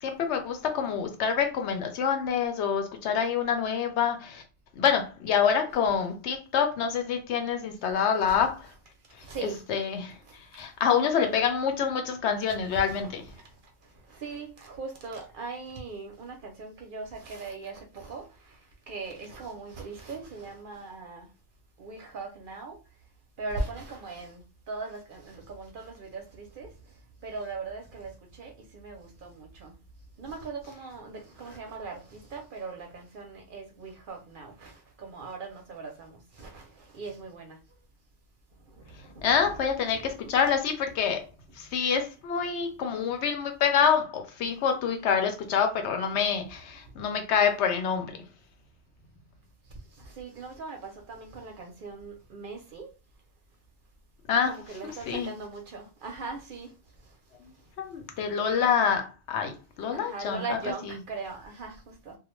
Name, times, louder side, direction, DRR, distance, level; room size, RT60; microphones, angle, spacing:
voice 1, 0.0-4.4 4.8-8.7 9.7-10.2 10.5-13.2 39.2-41.2 41.6-48.2 54.3-54.5 54.8-55.3 57.8-60.6, left 7 dB, 80° left, 0.9 m, -26 dB
voice 2, 9.2-9.6 10.3-10.6 12.4-13.4 14.1-18.6 18.9-21.3 21.8-22.8 23.4-26.7 27.2-29.7 30.2-37.6 38.8-39.6 39.9-40.4 50.0-52.9 54.4-56.7 59.9-62.2, right 3 dB, 60° right, 0.6 m, -40 dB
2.3 x 2.1 x 3.0 m
omnidirectional pair, 1.2 m